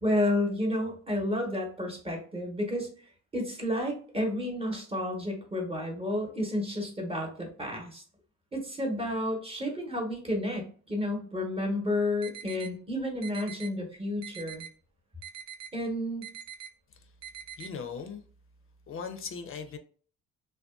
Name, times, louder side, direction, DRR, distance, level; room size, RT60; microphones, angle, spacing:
voice 1, 0.0-2.9 3.3-8.0 8.5-14.6 15.7-16.3, left 1 dB, 20° right, 0.9 m, -31 dB
sound 1, 12.2-12.7 13.2-13.7 14.2-14.7 15.2-15.7 16.2-16.7 17.2-17.7, right 9 dB, 65° right, 0.5 m, -43 dB
voice 2, 17.6-18.2 18.9-19.8, left 6 dB, 45° left, 0.5 m, -39 dB
2.4 x 2.2 x 2.3 m
cardioid pair, 90°, 30 cm